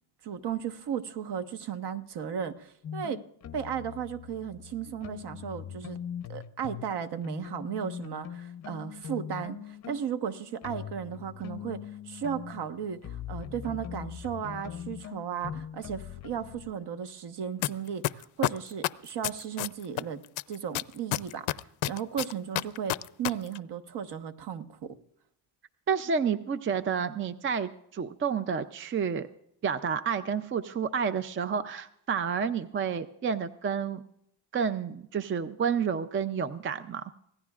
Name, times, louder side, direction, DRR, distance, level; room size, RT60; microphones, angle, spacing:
voice 1, 0.2-3.2 3.5-6.0 6.3-20.2 20.5-21.6 21.9-25.0, right 8 dB, 55° right, 9 dB, 1.3 m, -35 dB
sound 1, 2.8-6.9 7.2-16.7, left 9 dB, 35° left, 0.6 m, -41 dB
sound 2, 17.6-17.7 18.0-20.0 20.4-23.3 23.5-23.6, left 17 dB, 80° left, 0.7 m, -28 dB
voice 2, 25.9-29.3 29.6-34.0 34.5-37.0, right 6 dB, 25° right, 11 dB, 0.5 m, -30 dB
25.0 x 17.5 x 2.4 m, 0.74 s
cardioid pair, 130°, 48 cm